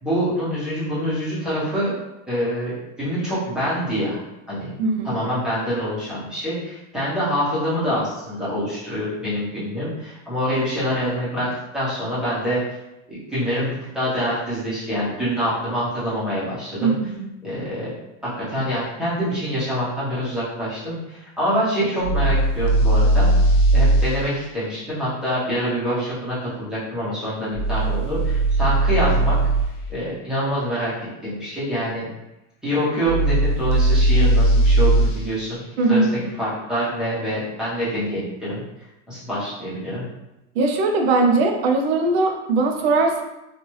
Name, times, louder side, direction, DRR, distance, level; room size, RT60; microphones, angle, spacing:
voice 1, 0.0-2.0 2.3-4.2 4.5-4.7 5.0-12.6 13.1-16.9 17.4-17.9 18.2-23.3 23.7-29.4 29.9-30.9 31.2-32.1 32.6-35.6 35.9-36.0 36.4-38.6 39.1-40.0, equal, ahead, -11 dB, 1.0 m, -25 dB
voice 2, 4.8-5.2 16.8-17.2 35.8-36.3 40.6-43.2, right 3 dB, 60° right, 3 dB, 0.7 m, -20 dB
sound 1, 22.0-24.1 27.5-29.7 33.0-35.1, right 1 dB, 30° left, 0.4 m, -18 dB
3.0 x 2.5 x 3.0 m, 0.94 s
supercardioid pair, 160°, 35 cm